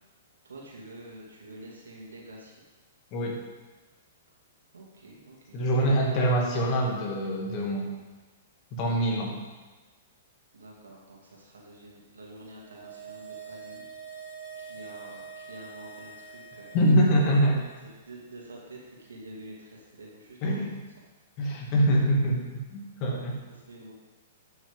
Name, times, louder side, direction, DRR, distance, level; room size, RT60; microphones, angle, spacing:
voice 1, 0.4-2.6 4.7-6.4 10.5-13.8 14.1-14.2 14.6-16.8 18.1-20.6 23.0-23.2 23.7-23.9, right 1 dB, 90° right, -3 dB, 2.5 m, -47 dB
voice 2, 5.5-7.9 8.7-9.3 16.7-17.6 20.4-20.8 21.4-22.4 22.7-23.3, right 1 dB, 40° left, -1 dB, 2.3 m, -24 dB
sound 1, 12.5-17.9 18.2-18.3, right 5 dB, 60° right, 2.6 m, -45 dB
10.5 x 6.3 x 3.7 m, 1.2 s
hypercardioid pair, 120°, 0 cm